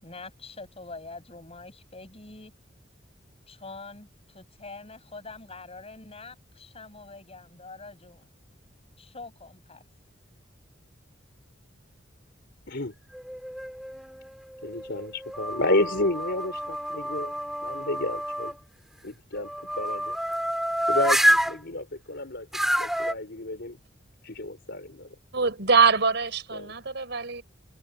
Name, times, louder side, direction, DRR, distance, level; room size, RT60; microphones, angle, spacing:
voice 1, 0.0-2.5 3.5-8.3 9.0-9.8, left 3 dB, 30° left, 6.7 m, -44 dB
sound 1, 13.1-14.0 14.6-18.5 19.4-21.6 22.5-23.1, equal, ahead, 4.8 m, -28 dB
voice 2, 14.6-17.3 17.6-18.6 19.0-20.2 20.9-23.8 24.2-25.1 26.5-26.7, left 2 dB, 60° left, 4.3 m, -31 dB
voice 3, 25.3-27.4, right 5 dB, 60° right, 4.8 m, -23 dB
head